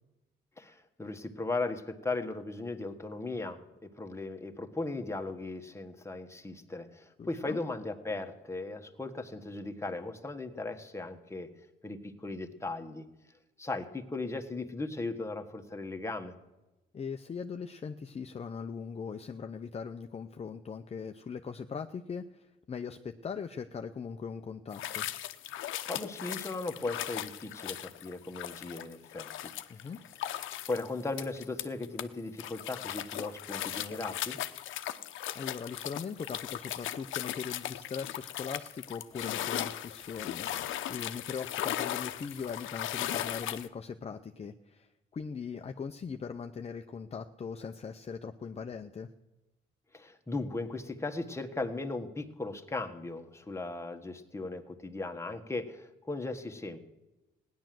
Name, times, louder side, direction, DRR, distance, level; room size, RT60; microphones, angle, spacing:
voice 1, 0.6-11.5 11.8-13.0 13.6-16.3 25.9-29.5 30.7-34.4 49.9-56.8, left 2 dB, 15° left, 5 dB, 1.5 m, -37 dB
voice 2, 7.2-7.6 16.9-25.1 29.7-30.0 35.3-49.1, left 6 dB, 30° left, 7 dB, 0.7 m, -40 dB
sound 1, 24.7-32.0 32.4-43.7, left 12 dB, 80° left, 0.8 m, -38 dB
16.5 x 10.5 x 7.7 m, 1.0 s
cardioid pair, 90°, 20 cm